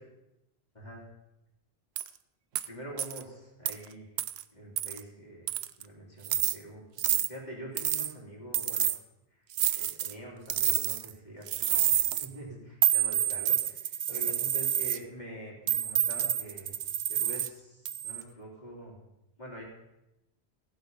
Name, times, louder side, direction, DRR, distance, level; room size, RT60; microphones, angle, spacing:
sound 1, 2.0-2.1 2.6-2.7 3.0-3.2 3.7-3.8 4.2-4.4 4.8-5.0 5.5-5.8 6.2-6.6 7.0-7.3 7.8-8.1 8.5-9.0 9.5-10.1 10.5-11.1 11.5-12.3 12.8-15.0 15.7-17.5 17.9-18.2, right 11 dB, 85° right, 0.8 m, -28 dB
voice 1, 2.7-4.1 4.5-5.5 5.8-8.9 9.4-11.9 12.2-16.7 17.1-19.0 19.4-19.6, right 1 dB, 45° left, -4 dB, 3.7 m, -45 dB
16.0 x 7.7 x 5.5 m, 0.93 s
omnidirectional pair, 1.0 m